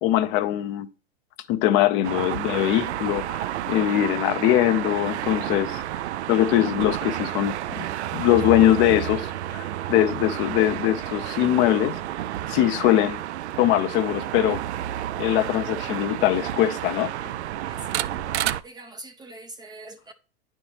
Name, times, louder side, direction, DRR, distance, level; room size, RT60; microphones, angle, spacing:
voice 1, 0.0-0.9 1.5-5.8 6.3-7.9 8.1-12.0 12.5-13.2 13.6-14.6 15.2-17.1, left 13 dB, 35° left, 0.5 m, -22 dB
sound 1, 2.0-18.6, right 12 dB, 85° right, 0.5 m, -30 dB
voice 2, 17.7-18.0 18.6-20.1, right 2 dB, 15° right, 0.4 m, -42 dB
9.5 x 4.4 x 3.1 m
hypercardioid pair, 120°, 33 cm